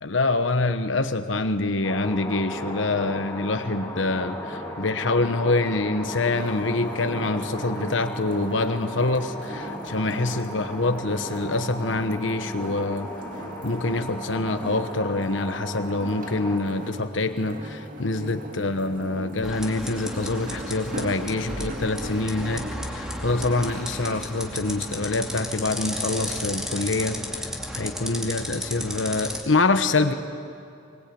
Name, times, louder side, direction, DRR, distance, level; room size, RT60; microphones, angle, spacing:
voice 1, 0.0-13.1 13.6-27.2 27.7-30.1, left 2 dB, 80° left, 8 dB, 1.1 m, -25 dB
sound 1, 1.8-16.6, equal, 15° left, 4.7 m, -35 dB
sound 2, 6.3-25.0, right 1 dB, 45° right, 2.1 m, -40 dB
sound 3, 19.4-29.4, equal, 5° right, 2.5 m, -33 dB
24.5 x 21.0 x 8.7 m, 2.5 s
head